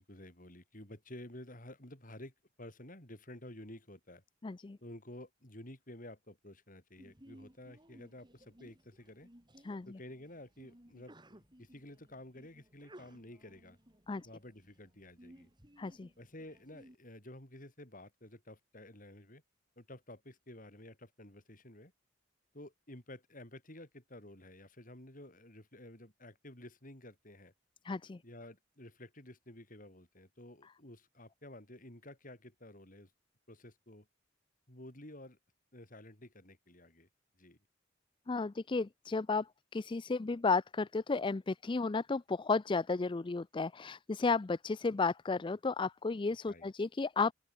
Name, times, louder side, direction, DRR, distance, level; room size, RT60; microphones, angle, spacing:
voice 1, 0.0-4.2 4.8-9.3 9.9-13.8 14.2-15.5 16.2-19.4 19.8-21.9 22.5-27.5 28.2-33.1 33.5-34.1 34.7-35.4 35.7-37.1 37.4-37.6 46.5-46.7, left 1 dB, 45° left, 7.3 m, -52 dB
voice 2, 4.4-4.8 9.6-10.0 14.1-14.3 15.8-16.1 27.8-28.2 38.3-47.3, left 4 dB, 25° left, 0.4 m, -33 dB
Sneeze, 7.0-16.9, right 1 dB, 25° right, 5.4 m, -60 dB
open air
head